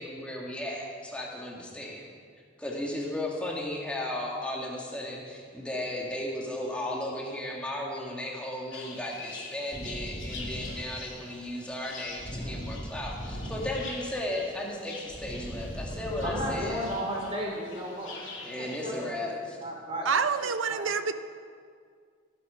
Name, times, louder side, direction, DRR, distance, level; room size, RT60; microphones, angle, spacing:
voice 1, 0.0-2.1 2.6-16.8 18.4-19.4, left 1 dB, 5° left, -3 dB, 2.0 m, -35 dB
sound 1, 8.7-19.1, left 3 dB, 85° left, 2.7 m, -45 dB
sound 2, 9.7-17.8, equal, 45° left, 4.7 m, -40 dB
voice 2, 16.2-19.3 19.6-20.1 20.7-20.8, equal, 30° right, -2 dB, 3.3 m, -34 dB
voice 3, 20.1-21.1, right 5 dB, 85° right, 11 dB, 0.7 m, -27 dB
17.0 x 9.8 x 5.8 m, 2.1 s
head